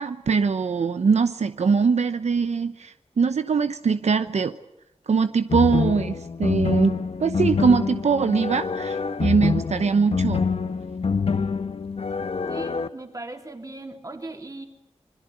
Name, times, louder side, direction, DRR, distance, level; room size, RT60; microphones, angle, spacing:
voice 1, 0.0-4.5 5.1-10.4, right 5 dB, 85° right, 10 dB, 0.9 m, -22 dB
Funny Background Music Orchestra Loop, 5.5-12.9, left 5 dB, 65° left, 1.1 m, -26 dB
voice 2, 12.5-14.7, right 2 dB, 30° right, 4 dB, 3.8 m, -38 dB
26.0 x 22.0 x 8.3 m, 0.85 s
wide cardioid pair, 90°, 11 cm